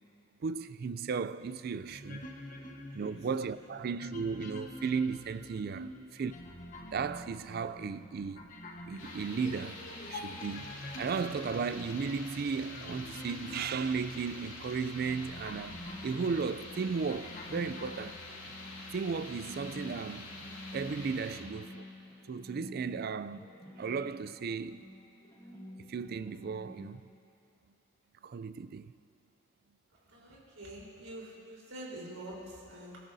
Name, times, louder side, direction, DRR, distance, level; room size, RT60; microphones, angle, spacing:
voice 1, 0.4-2.2 2.9-5.8 6.2-6.3 6.9-8.4 8.9-9.8 10.1-10.6 11.0-15.8 16.0-18.2 18.9-20.3 20.7-21.8 22.3-23.5 23.8-24.9 25.9-27.0 28.2-28.9, right 5 dB, 45° right, 0.3 m, -35 dB
sound 1, 1.9-18.2, left 1 dB, 40° left, 1.1 m, -47 dB
sound 2, 9.0-21.4, left 2 dB, 75° left, 2.4 m, -47 dB
sound 3, 15.6-27.0, left 1 dB, 20° left, 1.6 m, -50 dB
voice 2, 29.9-33.0, right 1 dB, 90° right, 3.9 m, -46 dB
26.0 x 13.5 x 2.7 m
head